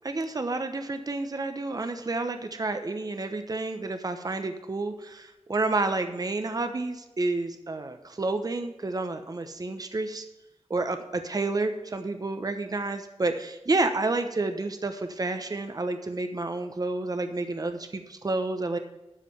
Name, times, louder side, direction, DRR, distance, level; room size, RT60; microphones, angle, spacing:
voice 1, 0.0-10.2 10.7-18.8, right 2 dB, 35° right, 8 dB, 0.9 m, -30 dB
12.5 x 5.0 x 7.0 m, 0.98 s
wide cardioid pair, 115°, 11 cm